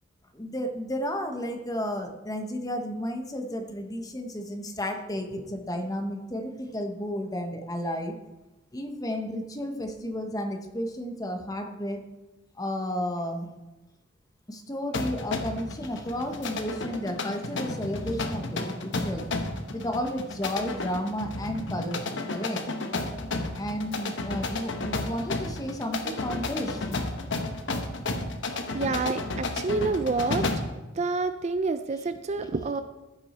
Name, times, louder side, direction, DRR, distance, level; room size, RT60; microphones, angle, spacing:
voice 1, 0.3-8.2 8.7-12.0 12.6-13.5 14.5-19.2 19.7-22.7 23.6-26.9, equal, 20° left, 5 dB, 1.0 m, -32 dB
sound 1, 14.9-30.8, left 2 dB, 65° left, 1.0 m, -32 dB
voice 2, 28.7-30.5 31.0-32.8, right 3 dB, 35° right, 10 dB, 0.4 m, -28 dB
14.5 x 6.2 x 4.2 m, 1.1 s
head